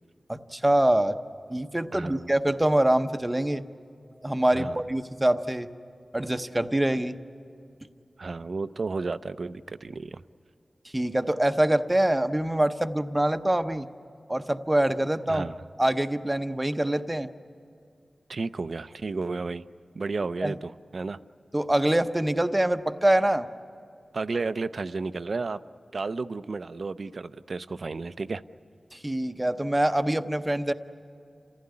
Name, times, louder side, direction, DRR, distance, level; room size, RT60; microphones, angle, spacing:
voice 1, 0.3-1.2 1.5-3.6 4.2-5.7 6.1-7.1 10.9-13.9 14.3-15.5 15.8-17.3 20.4-20.5 21.5-23.5 28.9-30.7, right 1 dB, 15° right, 9 dB, 0.8 m, -24 dB
voice 2, 1.9-2.3 4.5-4.8 8.2-10.2 15.3-15.6 18.3-19.6 19.9-21.2 24.1-25.6 25.9-28.4, right 3 dB, 65° right, 13 dB, 0.5 m, -32 dB
29.0 x 15.5 x 9.7 m, 2.5 s
wide cardioid pair, 95°, 0 cm